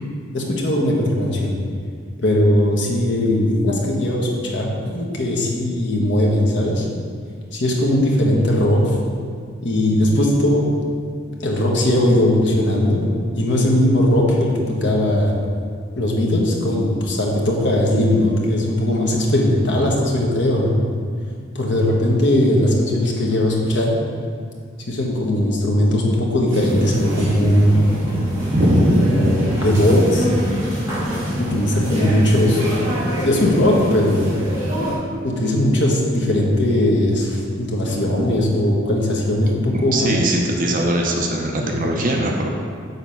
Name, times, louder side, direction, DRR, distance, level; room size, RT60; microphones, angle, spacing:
voice 1, 0.3-1.5 2.2-6.8 7.5-8.8 9.6-10.6 11.4-13.0 13.4-15.3 16.0-20.8 21.5-23.9 24.9-27.8 29.0-30.3 31.4-32.6 33.2-34.4 35.2-40.1 41.6-41.7, left 1 dB, 65° left, -2 dB, 1.2 m, -19 dB
sound 1, 26.5-34.9, equal, 20° right, 1.7 m, -25 dB
voice 2, 28.5-29.3 39.7-42.5, right 1 dB, 45° right, 1 dB, 0.6 m, -20 dB
6.8 x 4.0 x 5.7 m, 2.1 s
head